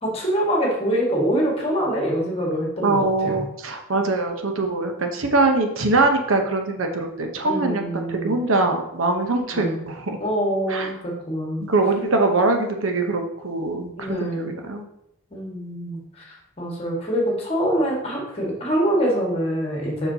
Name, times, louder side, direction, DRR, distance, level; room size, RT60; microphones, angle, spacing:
voice 1, 0.0-3.4 7.4-8.4 9.5-9.8 10.2-11.7 14.0-14.5 15.3-20.1, equal, 30° left, -2 dB, 1.6 m, -25 dB
voice 2, 2.8-10.2 10.7-10.9 11.6-14.8, right 2 dB, 75° right, 4 dB, 0.8 m, -23 dB
6.9 x 5.8 x 2.7 m, 0.79 s
head